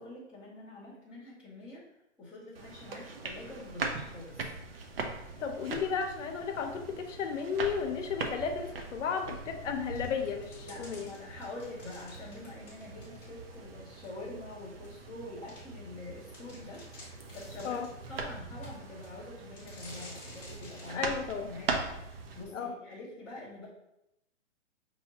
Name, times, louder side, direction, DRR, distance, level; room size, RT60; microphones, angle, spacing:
voice 1, 0.0-1.8 2.2-4.5 10.6-17.8 18.1-21.1 21.4-23.7, left 2 dB, 5° right, -11 dB, 0.7 m, -46 dB
sound 1, 2.5-22.4, right 3 dB, 50° right, 0.6 m, -41 dB
voice 2, 5.4-11.1 17.6-17.9 20.9-21.5 22.5-22.7, left 6 dB, 75° left, 5 dB, 0.7 m, -34 dB
sound 2, 9.9-13.6 14.0-14.1 14.8-14.9 15.5-15.6 16.0-16.1 16.3-18.0 18.6-19.1 19.6-21.0, left 1 dB, 15° left, 1.0 m, -51 dB
5.6 x 2.8 x 2.8 m, 0.85 s
hypercardioid pair, 160°, 37 cm